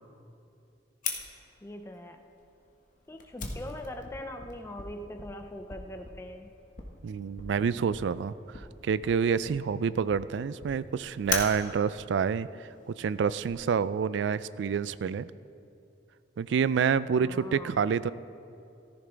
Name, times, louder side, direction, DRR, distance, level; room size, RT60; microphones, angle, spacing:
Fire, 1.0-13.5, left 5 dB, 45° left, 1.2 m, -41 dB
voice 1, 1.6-2.2 3.1-6.5 17.2-17.7, left 1 dB, 15° left, 5 dB, 0.4 m, -42 dB
voice 2, 7.0-15.3 16.4-18.1, right 6 dB, 75° right, 17 dB, 0.3 m, -28 dB
14.5 x 14.0 x 3.4 m, 2.6 s
head